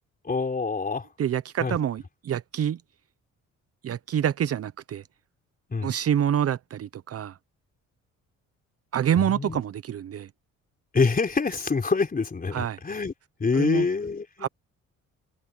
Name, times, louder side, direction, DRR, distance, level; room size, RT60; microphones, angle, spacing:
voice 1, 0.2-1.1 1.6-1.8 5.7-5.9 9.2-9.6 10.9-13.1 13.4-14.5, left 4 dB, 30° left, 3.7 m, -26 dB
voice 2, 1.2-2.8 3.8-5.0 5.8-7.4 8.9-10.3 12.5-12.8 13.5-13.8 14.4-14.5, right 9 dB, 50° right, 0.8 m, -27 dB
cardioid pair, 90°, 30 cm